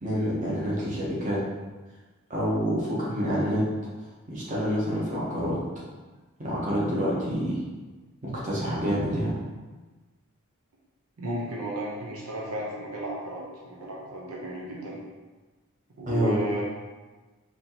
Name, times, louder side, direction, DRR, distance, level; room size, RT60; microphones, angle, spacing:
voice 1, 0.0-1.4 2.3-3.7 4.3-5.6 6.4-7.6 8.2-9.4 16.1-16.3, equal, 35° right, -6 dB, 1.0 m, -27 dB
voice 2, 11.2-15.0 16.0-16.6, right 1 dB, 90° right, -3 dB, 0.7 m, -34 dB
4.3 x 2.7 x 2.9 m, 1.3 s
head